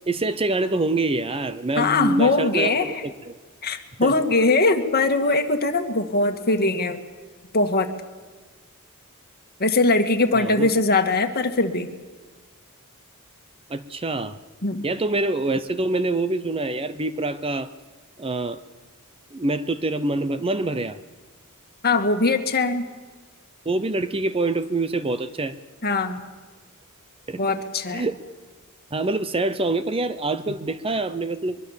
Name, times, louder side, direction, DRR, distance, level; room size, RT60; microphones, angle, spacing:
voice 1, 0.1-3.4 4.0-4.1 10.3-10.7 13.7-14.4 14.8-17.7 18.2-18.6 19.3-21.0 23.7-25.6 27.3-27.4 27.9-28.2 28.9-31.6, right 2 dB, 25° right, 12 dB, 0.7 m, -25 dB
voice 2, 1.8-3.0 3.6-7.0 7.5-7.9 9.6-11.9 14.6-14.8 21.8-22.8 25.8-26.2 27.4-28.0, left 3 dB, 45° left, 6 dB, 1.9 m, -21 dB
23.5 x 23.0 x 7.4 m, 1.4 s
head